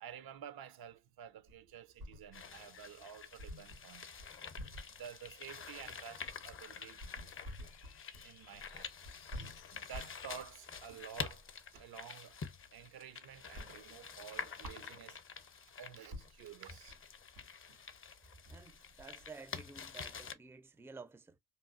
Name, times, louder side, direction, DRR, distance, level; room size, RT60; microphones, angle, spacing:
voice 1, 0.0-4.1 5.0-7.1 8.2-8.9 9.7-11.5 11.7-12.4 12.7-15.2 15.8-16.9, right 9 dB, 75° right, 0.6 m, -51 dB
sound 1, 1.5-2.6 2.9-3.0 3.4-12.0 12.4-13.1 13.4-15.4 15.8-15.9 16.1-20.3, equal, 90° right, 1.9 m, -51 dB
sound 2, 2.3-20.3, left 6 dB, 35° left, 0.6 m, -48 dB
sound 3, 6.0-11.5, left 12 dB, 80° left, 0.5 m, -65 dB
voice 2, 18.5-21.4, right 4 dB, 5° right, 0.4 m, -52 dB
3.0 x 2.3 x 2.4 m
cardioid pair, 75°, 37 cm